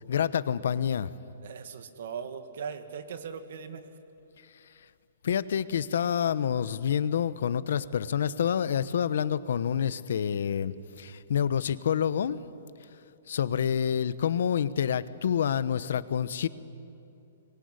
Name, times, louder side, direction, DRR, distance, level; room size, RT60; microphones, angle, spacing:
voice 1, 0.1-1.1 5.2-12.4 13.3-16.5, left 8 dB, 65° left, 16 dB, 1.0 m, -28 dB
voice 2, 1.4-3.8, right 6 dB, 55° right, 9 dB, 2.0 m, -39 dB
24.5 x 22.0 x 9.7 m, 2.8 s
hypercardioid pair, 170°, 0 cm